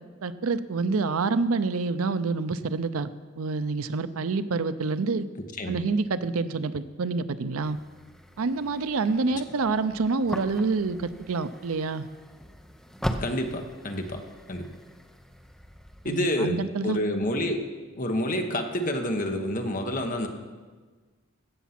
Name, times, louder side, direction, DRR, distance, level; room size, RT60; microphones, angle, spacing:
voice 1, 0.2-3.1 3.4-5.3 5.7-7.8 8.4-12.1 16.0-17.0, right 4 dB, 90° right, 13 dB, 0.6 m, -27 dB
sound 1, 7.6-16.2, equal, ahead, 0.6 m, -40 dB
voice 2, 13.2-14.2 14.5-14.7 16.0-17.7 17.9-20.3, left 1 dB, 40° left, 4 dB, 1.1 m, -28 dB
15.5 x 7.1 x 5.9 m, 1.4 s
head